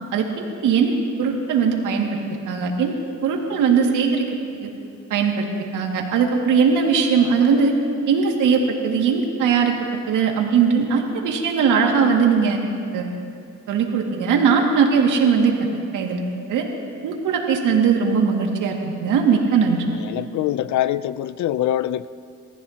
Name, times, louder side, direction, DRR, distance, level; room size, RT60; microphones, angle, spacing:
voice 1, 0.1-2.2 2.5-2.9 3.2-4.3 4.6-4.7 5.1-5.5 5.7-7.7 8.1-9.7 10.1-12.6 12.9-13.1 13.7-15.5 15.9-16.2 16.5-16.6 17.0-19.9, right 6 dB, 85° right, 0 dB, 2.2 m, -19 dB
voice 2, 20.0-22.1, left 12 dB, 70° left, 16 dB, 0.5 m, -23 dB
28.0 x 14.5 x 2.9 m, 2.6 s
cardioid pair, 90°, 30 cm